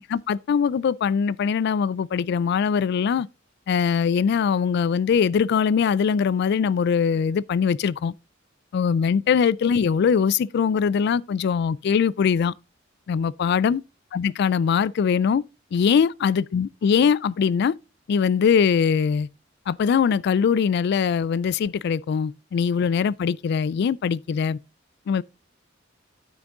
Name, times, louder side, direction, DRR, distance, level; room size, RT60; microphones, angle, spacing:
voice 1, 0.1-3.3 3.7-8.1 8.7-12.5 13.1-13.8 14.1-15.4 15.7-17.7 18.1-19.3 19.7-24.6 25.1-25.2, left 6 dB, 60° left, 0.3 m, -22 dB
9.0 x 6.0 x 3.7 m
head